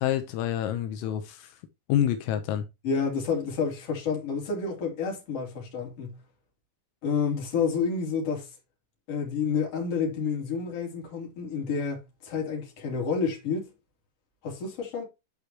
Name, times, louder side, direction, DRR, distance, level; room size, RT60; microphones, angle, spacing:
voice 1, 0.0-1.6 1.9-2.7, left 11 dB, 80° left, 3.6 m, -27 dB
voice 2, 2.8-6.2 7.0-8.5 9.1-13.7 14.4-15.0, left 5 dB, 35° left, 3.6 m, -29 dB
12.0 x 5.0 x 3.0 m
omnidirectional pair, 5.9 m